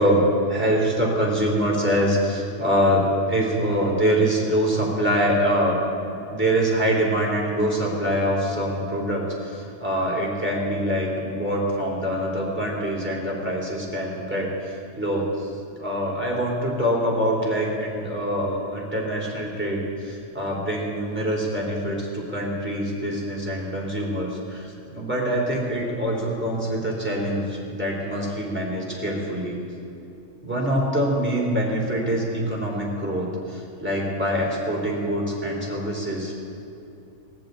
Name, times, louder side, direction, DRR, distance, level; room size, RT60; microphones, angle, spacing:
voice 1, 0.0-15.5 15.8-29.6 30.4-36.4, equal, 10° right, -4 dB, 3.4 m, -24 dB
19.5 x 14.0 x 4.0 m, 2.8 s
omnidirectional pair, 1.4 m